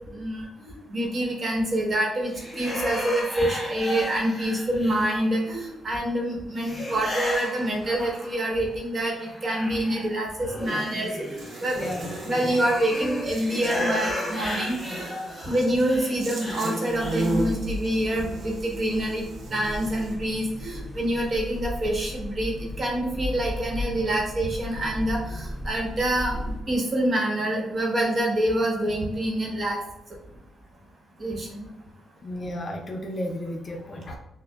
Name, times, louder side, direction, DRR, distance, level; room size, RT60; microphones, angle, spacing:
voice 1, 0.2-9.1 9.4-11.8 12.2-14.8 15.5-19.2 19.5-29.8 31.2-31.7, right 1 dB, 40° right, -1 dB, 1.1 m, -26 dB
sound 1, 2.3-5.5 6.6-8.6 9.0-17.4, left 1 dB, 10° left, 1.2 m, -34 dB
Buzz, 11.1-20.1, right 1 dB, 75° right, 0.9 m, -35 dB
voice 2, 11.7-12.1 32.2-34.2, left 1 dB, 35° left, 1 dB, 0.6 m, -33 dB
sound 2, 16.9-26.6, left 1 dB, 5° right, 0.4 m, -36 dB
6.4 x 2.2 x 2.3 m, 0.89 s
cardioid pair, 120°, 0 cm